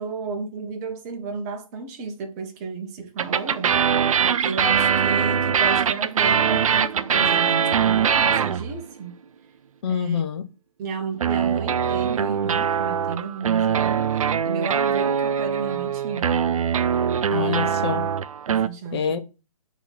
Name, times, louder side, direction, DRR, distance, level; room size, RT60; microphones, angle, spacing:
voice 1, 0.0-3.8 4.2-9.2 9.8-10.2 10.8-14.1 14.4-16.6 18.5-19.2, right 4 dB, 25° right, 1.0 m, -33 dB
sound 1, 3.2-8.9 11.2-18.7, right 7 dB, 65° right, 0.5 m, -22 dB
voice 2, 9.8-10.4 17.3-18.0 18.9-19.2, left 7 dB, 45° left, 0.9 m, -25 dB
7.4 x 3.1 x 4.3 m
figure-of-eight pair, 135°, 18 cm